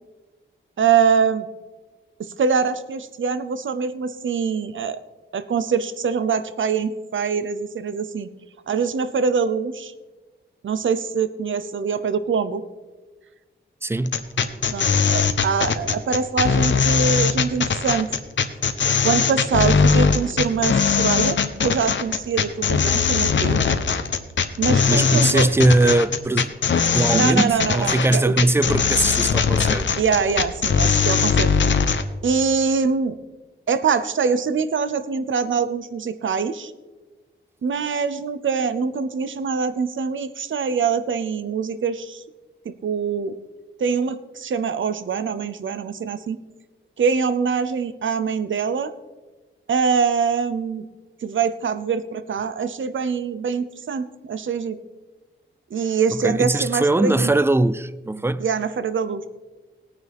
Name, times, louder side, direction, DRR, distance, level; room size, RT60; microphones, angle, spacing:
voice 1, 0.8-1.5 2.2-5.0 5.3-8.3 8.7-9.9 10.6-12.6 14.7-18.1 19.0-23.7 24.6-25.5 27.1-28.3 30.0-31.5 32.2-33.2 33.7-36.7 37.6-42.2 42.6-43.3 43.8-46.4 47.0-48.9 49.7-50.9 51.2-54.8 55.7-57.3 58.4-59.3, right 6 dB, 70° right, 0.7 m, -24 dB
voice 2, 13.8-14.3 24.9-26.5 26.9-29.9 56.1-58.5, right 2 dB, 10° right, 0.4 m, -20 dB
sound 1, 14.1-32.0, left 6 dB, 65° left, 0.8 m, -20 dB
18.0 x 9.6 x 3.5 m
wide cardioid pair, 100°, 21 cm